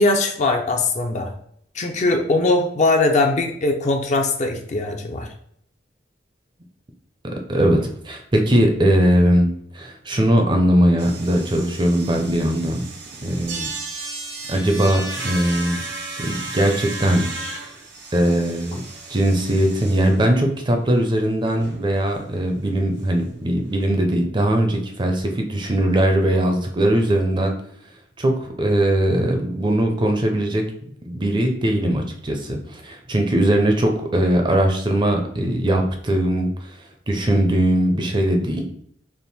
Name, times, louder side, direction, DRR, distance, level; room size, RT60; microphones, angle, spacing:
voice 1, 0.0-1.3 1.7-5.3, left 2 dB, 40° left, 4 dB, 0.5 m, -20 dB
voice 2, 7.5-9.5 9.7-12.9 13.2-13.7 14.5-15.8 16.2-17.3 18.1-18.8 19.1-27.5 28.2-30.6 31.0-36.8 37.1-38.6, right 1 dB, 25° right, 3 dB, 0.5 m, -20 dB
sound 1, 11.0-20.3 20.6-20.7 21.0-21.1 21.4-21.8 22.1-22.2 22.5-22.6 23.8-23.9, right 3 dB, 70° right, 0.8 m, -34 dB
3.5 x 2.5 x 4.1 m, 0.67 s
head